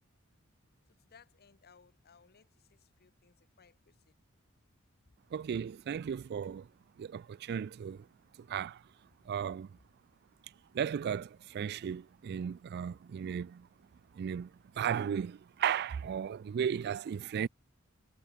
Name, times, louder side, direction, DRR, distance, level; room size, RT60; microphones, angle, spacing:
voice 1, 1.1-2.5 3.0-3.7, left 6 dB, 50° left, 0.9 m, -61 dB
voice 2, 5.3-6.6 7.0-8.0 8.5-8.8 9.3-9.7 10.7-13.6 14.2-14.5 14.8-17.5, right 8 dB, 50° right, 0.3 m, -35 dB
head